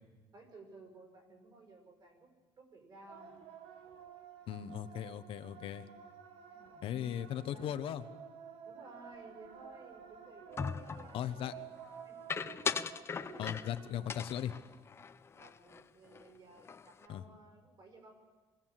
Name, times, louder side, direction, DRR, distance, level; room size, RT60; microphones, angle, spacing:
voice 1, 0.3-2.3 2.6-3.3 6.5-7.7 8.6-12.2 15.3-18.1, right 3 dB, 45° right, 3 dB, 5.3 m, -56 dB
sound 1, 3.1-14.1, right 8 dB, 80° right, 1.6 m, -52 dB
voice 2, 4.5-5.8 6.8-8.0 11.1-11.5 13.4-14.5 17.1-17.2, left 10 dB, 65° left, 10 dB, 0.9 m, -38 dB
sound 2, 10.6-11.1 12.3-13.8 14.1-15.8 16.1-16.3 16.6-17.1, left 6 dB, 25° left, 0.6 m, -39 dB
23.5 x 16.0 x 7.4 m, 1.3 s
cardioid pair, 155°, 10 cm